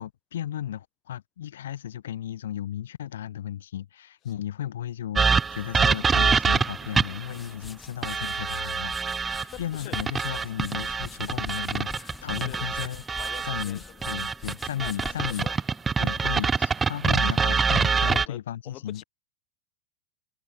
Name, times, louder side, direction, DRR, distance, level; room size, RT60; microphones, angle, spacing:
voice 1, 0.0-13.0 13.5-15.5 16.0-19.0, left 11 dB, 60° left, 7.2 m, -35 dB
sound 1, 5.2-7.3 8.0-9.4 9.9-13.6 14.0-18.3, right 5 dB, 15° right, 0.9 m, -25 dB
sound 2, 7.0-16.4, left 4 dB, 10° left, 6.5 m, -46 dB
voice 2, 9.5-10.0 12.3-12.7 13.1-14.1 14.8-15.5 18.0-19.0, left 15 dB, 35° left, 4.8 m, -44 dB
figure-of-eight pair, 90°, 0 cm